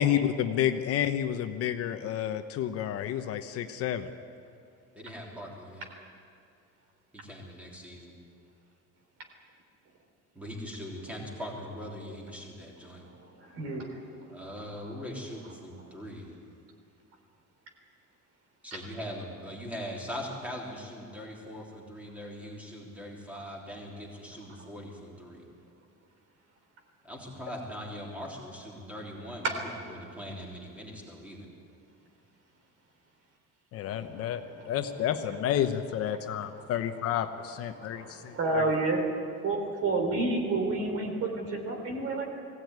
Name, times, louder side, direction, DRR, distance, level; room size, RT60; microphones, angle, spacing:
voice 1, 0.0-4.1 33.7-38.6, left 10 dB, 50° left, 8 dB, 1.0 m, -30 dB
voice 2, 4.9-5.9 7.1-8.1 10.3-13.1 14.3-16.4 18.6-25.5 27.0-31.5, equal, 5° right, -2 dB, 3.4 m, -41 dB
voice 3, 13.4-13.9 14.4-14.6 29.4-29.6 34.0-34.1 37.8-39.0 39.4-42.3, right 3 dB, 50° right, 3 dB, 3.8 m, -29 dB
21.0 x 17.0 x 9.5 m, 2.5 s
cardioid pair, 180°, 30 cm